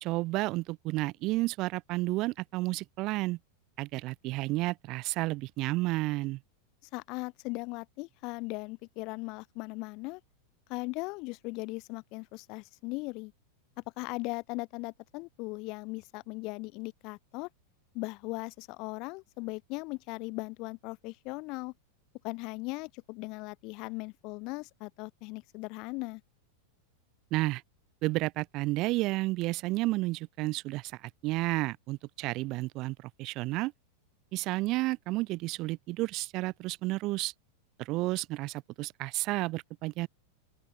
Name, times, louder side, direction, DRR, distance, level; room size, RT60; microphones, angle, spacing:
voice 1, 0.0-3.4 3.8-6.4 27.3-27.6 28.0-33.7 34.3-37.3 37.8-40.1, right 20 dB, 40° right, 0.7 m, -31 dB
voice 2, 6.9-10.2 10.7-13.3 14.0-17.5 17.9-21.7 22.2-26.2, left 26 dB, 40° left, 3.2 m, -38 dB
open air
figure-of-eight pair, 90°, 0 cm